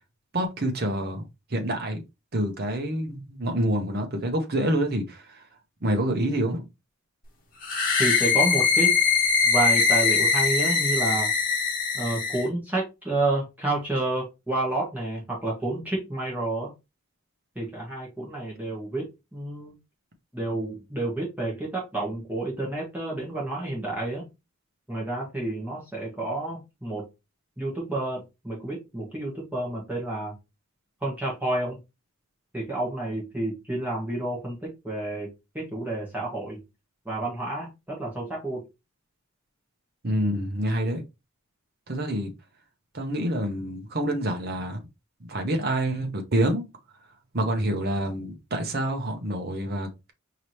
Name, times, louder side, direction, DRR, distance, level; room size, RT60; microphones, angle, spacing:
voice 1, 0.3-1.2 1.5-2.0 2.3-5.4 5.8-6.6 40.0-41.0 41.9-42.3 42.9-44.8 45.3-46.6 47.3-50.1, right 1 dB, 45° right, 0.9 m, -27 dB
sound 1, 7.6-12.5, left 5 dB, 40° left, 1.2 m, -22 dB
voice 2, 8.0-8.9 9.4-11.3 11.9-16.7 17.5-19.7 20.3-24.2 24.9-27.1 27.6-30.3 31.0-31.8 32.5-36.6 37.0-38.6, right 2 dB, 10° right, 1.4 m, -30 dB
4.8 x 2.9 x 3.1 m
head